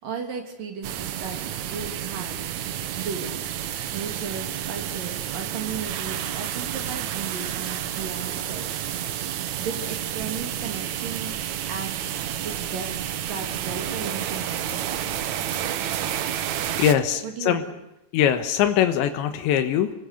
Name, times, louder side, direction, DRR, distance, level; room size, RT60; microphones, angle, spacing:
voice 1, 0.0-2.4 3.0-8.7 9.3-11.3 11.7-12.9 13.2-15.1 17.2-17.8, right 5 dB, 55° right, 4 dB, 4.2 m, -36 dB
sound 1, 0.8-16.9, right 10 dB, 90° right, 1.6 m, -30 dB
voice 2, 16.8-17.6 18.1-19.9, left 10 dB, 85° left, 8 dB, 3.6 m, -22 dB
27.0 x 21.0 x 8.4 m, 0.90 s
omnidirectional pair, 5.1 m